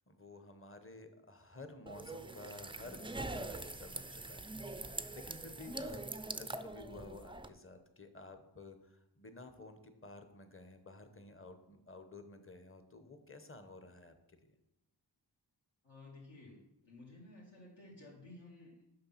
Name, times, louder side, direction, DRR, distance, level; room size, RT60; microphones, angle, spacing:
voice 1, 0.0-14.5, left 3 dB, 30° left, 8 dB, 1.0 m, -53 dB
sound 1, 1.9-7.5, right 2 dB, 10° right, 0.4 m, -44 dB
voice 2, 15.8-16.6 16.8-18.7, left 2 dB, 70° left, -6 dB, 2.1 m, -54 dB
6.6 x 5.7 x 5.7 m, 0.88 s
wide cardioid pair, 45°, 46 cm